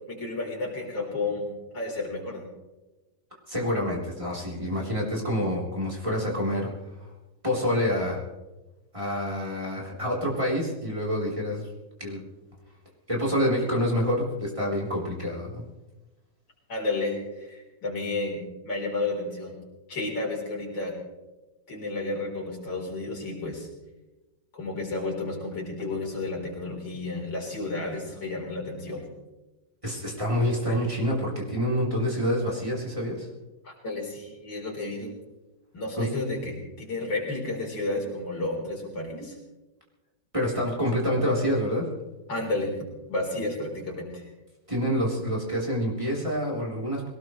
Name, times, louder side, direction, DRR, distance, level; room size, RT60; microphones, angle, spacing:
voice 1, 0.1-1.5 1.7-2.5 16.7-19.6 19.9-20.9 21.7-23.7 24.5-29.1 33.6-35.1 35.7-39.4 42.3-44.3, left 2 dB, 65° left, -1 dB, 4.7 m, -32 dB
voice 2, 3.5-6.7 7.4-8.2 8.9-11.7 12.0-12.2 13.1-15.5 29.8-33.3 36.0-36.1 40.3-41.8 44.7-47.1, equal, 15° right, -4 dB, 3.9 m, -27 dB
21.5 x 19.0 x 3.2 m, 1.1 s
omnidirectional pair, 2.2 m